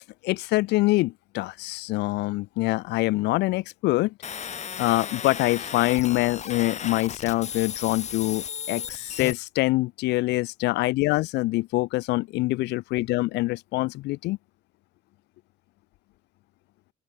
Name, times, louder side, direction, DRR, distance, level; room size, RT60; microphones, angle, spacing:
voice 1, 0.2-4.1 4.8-14.4, left 20 dB, 90° left, 6.1 m, -25 dB
sound 1, 4.2-9.3, left 7 dB, 45° left, 4.9 m, -35 dB
open air
cardioid pair, 110°, 17 cm